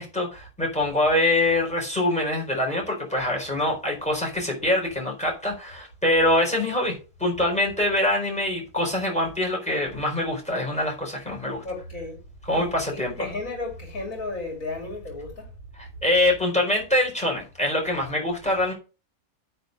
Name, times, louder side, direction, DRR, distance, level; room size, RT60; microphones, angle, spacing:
voice 1, 0.0-11.6 12.5-13.1 15.8-18.7, left 1 dB, 5° left, 4.3 m, -24 dB
voice 2, 11.6-12.2 12.5-15.5, left 2 dB, 65° left, 2.9 m, -34 dB
9.0 x 4.4 x 6.6 m
omnidirectional pair, 1.5 m